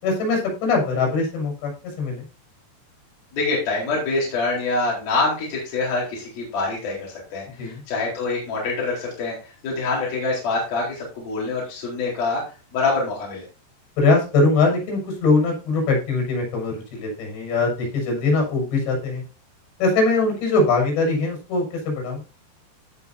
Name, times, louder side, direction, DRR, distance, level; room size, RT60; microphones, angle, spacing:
voice 1, 0.0-1.7 2.0-2.2 7.6-7.8 14.0-19.2 19.8-22.2, left 3 dB, 80° left, 1 dB, 8.7 m, -21 dB
voice 2, 3.3-9.3 9.6-12.4 12.7-13.4, left 3 dB, 60° left, -4 dB, 6.0 m, -25 dB
18.0 x 6.0 x 2.8 m, 0.33 s
omnidirectional pair, 4.9 m